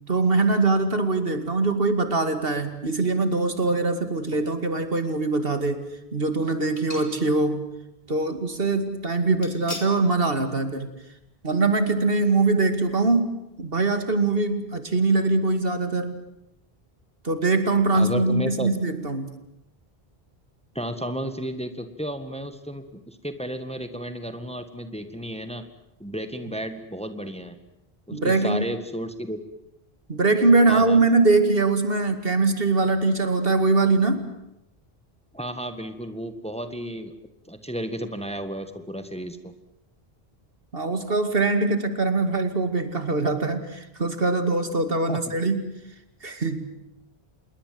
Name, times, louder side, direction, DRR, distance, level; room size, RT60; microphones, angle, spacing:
voice 1, 0.1-7.7 8.1-10.9 11.4-16.2 17.2-19.3 28.1-28.7 30.1-34.3 40.7-45.6 46.2-46.7, right 3 dB, 65° right, 9 dB, 2.6 m, -22 dB
sound 1, 4.3-4.9 5.5-5.6 6.8-7.5 7.8-7.9 9.4-10.0 10.4-10.6 10.9-11.0, left 2 dB, 55° left, 4.1 m, -40 dB
voice 2, 17.9-18.7 20.7-25.6 26.0-27.6 28.1-29.4 30.7-31.0 35.3-37.1 37.5-39.5 45.1-45.2, equal, 5° left, 9 dB, 1.8 m, -33 dB
27.0 x 22.0 x 7.8 m, 0.87 s
omnidirectional pair, 1.0 m